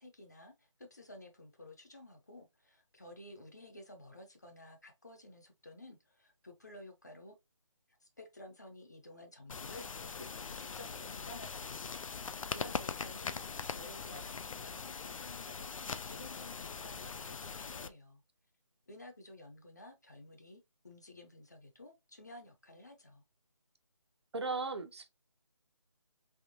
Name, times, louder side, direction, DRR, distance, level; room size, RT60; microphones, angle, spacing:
voice 1, 0.0-7.3 8.0-10.3 10.6-12.2 12.5-18.2 18.9-23.2, left 1 dB, 35° left, 0.6 m, -53 dB
sound 1, 9.5-17.9, left 5 dB, 85° left, 0.4 m, -41 dB
voice 2, 24.3-25.1, right 3 dB, 55° right, 0.5 m, -37 dB
3.5 x 2.9 x 2.6 m
figure-of-eight pair, 175°, 17 cm